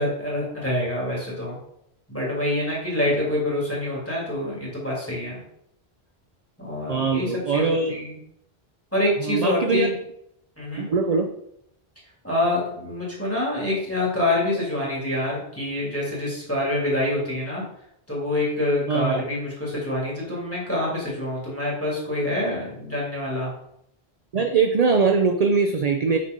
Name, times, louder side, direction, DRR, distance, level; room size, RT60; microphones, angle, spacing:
voice 1, 0.0-1.6 2.1-5.4 6.6-8.2 8.9-9.9 10.6-10.9 12.2-17.6 18.1-23.5, left 1 dB, 15° left, -6 dB, 2.5 m, -26 dB
voice 2, 6.9-7.9 9.2-9.9 10.8-11.3 18.9-19.2 24.3-26.2, right 4 dB, 50° right, 5 dB, 0.5 m, -21 dB
6.6 x 4.0 x 5.2 m, 0.77 s
omnidirectional pair, 1.1 m